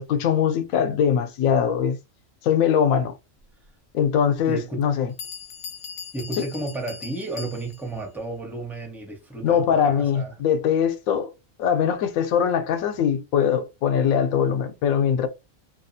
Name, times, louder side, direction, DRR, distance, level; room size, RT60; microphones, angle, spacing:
voice 1, 0.0-2.0 2.4-3.1 3.9-5.1 9.4-11.3 11.6-15.3, left 8 dB, 90° left, 1.0 m, -22 dB
voice 2, 4.5-4.9 6.1-10.3, right 2 dB, ahead, 0.5 m, -32 dB
Bell, 4.8-4.9 5.2-8.0, left 6 dB, 60° left, 0.6 m, -39 dB
2.6 x 2.3 x 2.6 m
omnidirectional pair, 1.4 m